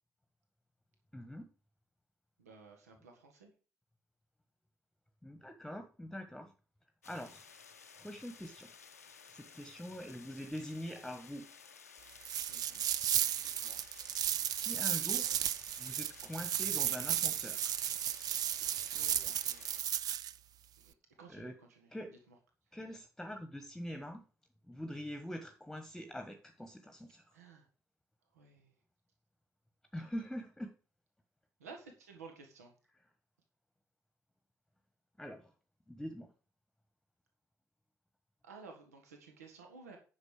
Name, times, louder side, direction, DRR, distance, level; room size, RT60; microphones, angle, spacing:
voice 1, 1.1-1.5 5.2-6.5 7.0-7.4 8.0-8.7 9.3-11.5 14.1-15.3 15.8-17.7 21.3-21.5 21.9-22.1 22.7-24.2 24.7-27.3 29.9-30.7 35.2-35.5 35.9-36.3, equal, 5° left, 8 dB, 1.3 m, -44 dB
voice 2, 2.4-3.5 12.5-12.8 13.3-13.8 17.3-17.4 17.8-18.2 18.6-20.0 20.8-20.9 21.2-22.4 27.3-27.7 28.3-28.7 31.6-32.7 38.4-40.0, right 4 dB, 80° right, 4 dB, 1.6 m, -55 dB
sound 1, 7.0-19.8, left 6 dB, 85° left, 0.7 m, -56 dB
sound 2, 12.2-20.3, right 11 dB, 50° right, 0.5 m, -34 dB
9.7 x 6.4 x 4.9 m, 0.37 s
figure-of-eight pair, 50°, 8 cm